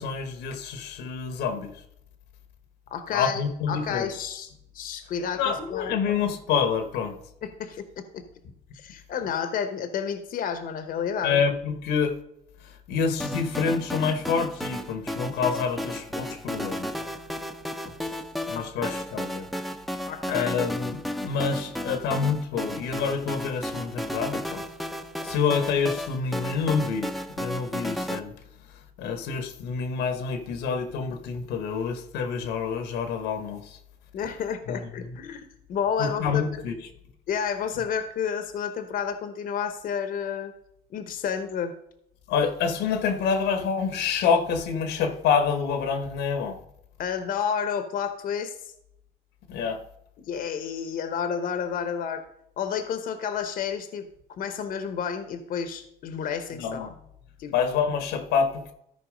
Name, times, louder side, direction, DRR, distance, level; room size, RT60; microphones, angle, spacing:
voice 1, 0.0-1.7 3.1-4.1 5.3-7.2 11.2-12.2 12.6-16.9 18.5-19.5 20.3-24.6 25.2-27.1 27.4-28.3 29.0-33.8 34.7-35.2 36.0-36.7 42.3-46.6 49.5-49.8 56.5-56.9 57.5-58.7, left 6 dB, 85° left, 1.3 m, -27 dB
voice 2, 2.9-3.4 3.7-4.5 4.7-5.4 5.7-5.9 7.4-8.2 8.7-11.4 18.5-18.9 20.1-20.5 34.1-36.6 37.3-40.5 40.9-41.7 47.0-48.5 50.2-52.2 52.6-56.9 57.4-57.5, left 7 dB, 55° left, 0.9 m, -30 dB
sound 1, 13.2-28.2, equal, ahead, 0.7 m, -33 dB
13.5 x 4.7 x 5.0 m
cardioid pair, 110°, 17 cm